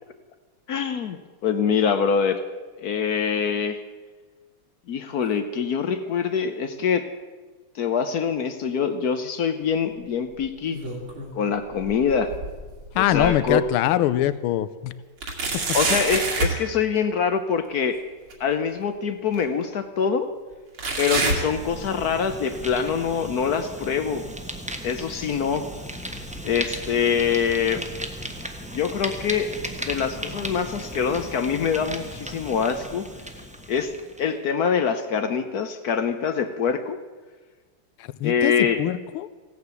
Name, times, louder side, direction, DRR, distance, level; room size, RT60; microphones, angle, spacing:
voice 1, 0.7-2.4 2.8-3.8 4.9-7.1 7.7-10.8 11.3-12.3 13.0-13.7 15.7-18.0 18.4-20.3 21.0-24.3 24.8-25.7 26.4-27.8 28.7-29.5 29.8-33.1 33.7-37.0 38.2-38.8, left 6 dB, 65° left, 9 dB, 1.0 m, -24 dB
sound 1, 10.4-11.4 11.7-13.6 14.1-14.2 15.2-16.6 18.3-18.4 19.3-19.4 20.8-22.2 22.5-22.9 23.5-23.6 24.5-24.6, right 3 dB, 70° right, 3.1 m, -28 dB
voice 2, 12.9-14.9 38.2-38.5 38.8-39.3, left 13 dB, 80° left, 15 dB, 1.5 m, -23 dB
Fire, 21.0-34.3, equal, 5° right, 0.7 m, -36 dB
16.0 x 9.5 x 8.2 m, 1.3 s
omnidirectional pair, 2.4 m